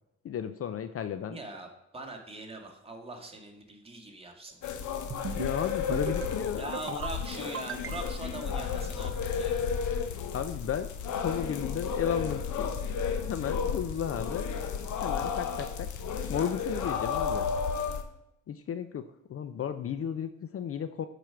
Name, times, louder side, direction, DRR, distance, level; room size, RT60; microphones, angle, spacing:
voice 1, 0.2-1.4 5.3-7.0 10.3-12.7 13.3-14.5 15.0-15.9 16.3-17.5 18.5-19.0 19.3-21.1, left 8 dB, 50° left, 11 dB, 0.6 m, -34 dB
voice 2, 1.3-5.0 6.6-9.7, right 2 dB, 20° right, 1 dB, 2.0 m, -42 dB
sound 1, 4.6-18.0, left 6 dB, 75° left, 1.0 m, -32 dB
sound 2, 5.1-5.5 5.9-6.4 6.7-7.2 7.5-8.3, right 7 dB, 45° right, 0.7 m, -38 dB
9.0 x 5.0 x 5.8 m, 0.87 s
cardioid pair, 90°, 30 cm